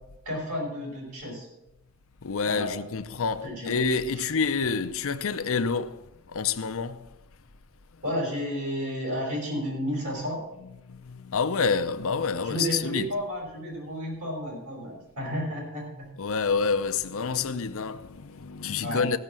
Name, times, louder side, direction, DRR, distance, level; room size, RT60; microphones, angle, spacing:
voice 1, 0.2-1.5 2.4-2.8 3.4-3.7 4.1-4.2 8.0-10.4 12.4-16.1 18.8-19.0, equal, 70° right, 6.2 m, -32 dB
voice 2, 2.2-7.1 10.9-13.1 16.2-19.2, left 5 dB, 65° left, 0.6 m, -28 dB
15.0 x 6.6 x 7.4 m
head